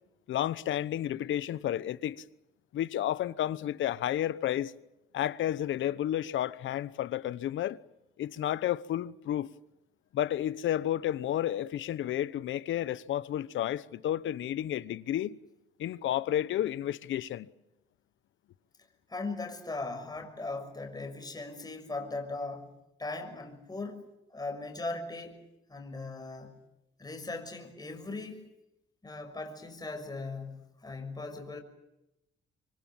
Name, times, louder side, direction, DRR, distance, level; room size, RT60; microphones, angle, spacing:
voice 1, 0.3-2.2 2.7-4.7 5.1-7.8 8.2-9.5 10.1-15.4 15.8-17.5, left 12 dB, 75° left, 1.1 m, -31 dB
voice 2, 19.1-25.4 25.7-26.5 27.0-28.5 29.0-31.6, left 3 dB, 20° left, 6.2 m, -39 dB
25.5 x 25.0 x 7.3 m
cardioid pair, 90°, 20 cm